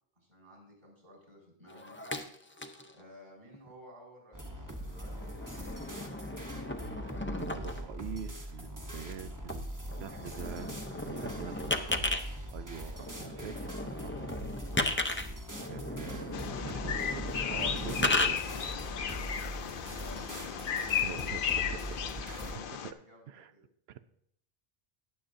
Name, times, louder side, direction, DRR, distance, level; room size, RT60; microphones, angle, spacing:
voice 1, 0.1-2.0 2.9-5.6 11.4-11.5 19.8-21.6 22.3-23.6, equal, 60° right, -3 dB, 4.8 m, -54 dB
sound 1, 1.7-2.9 3.5-3.7 4.7-7.8 9.5-9.6 9.9-12.2 13.0-18.3, left 2 dB, 15° left, 0.4 m, -35 dB
sound 2, 4.3-22.6, equal, 20° right, 1.0 m, -42 dB
voice 2, 7.3-11.9 12.5-14.6 15.7-18.6 20.8-21.4 22.2-22.5 22.8-22.9 23.3-23.5 23.9-24.0, right 9 dB, 85° right, 13 dB, 0.8 m, -45 dB
Bird vocalization bird call bird song, 16.3-22.9, left 8 dB, 65° left, 0.7 m, -34 dB
19.0 x 7.1 x 2.6 m, 0.68 s
omnidirectional pair, 1.0 m